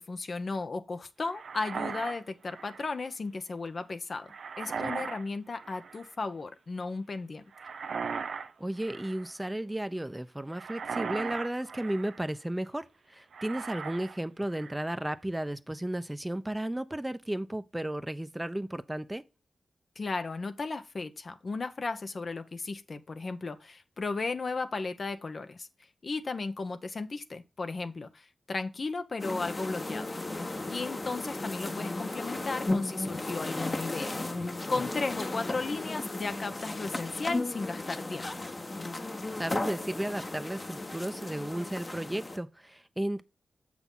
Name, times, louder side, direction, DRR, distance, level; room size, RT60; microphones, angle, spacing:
voice 1, 0.0-7.4 20.0-25.7 26.0-30.1 30.7-38.5, left 3 dB, 55° left, 0.8 m, -35 dB
sound 1, 1.3-2.9 4.3-5.3 5.5-6.1 7.5-8.5 8.8-9.3 10.5-12.2 13.3-14.2 14.5-14.9, right 5 dB, 80° right, 0.6 m, -38 dB
voice 2, 8.6-19.2 39.4-43.2, right 1 dB, 15° right, 0.7 m, -34 dB
sound 2, 29.2-42.4, left 2 dB, 35° left, 1.1 m, -35 dB
7.0 x 6.1 x 3.8 m
cardioid pair, 45°, 0 cm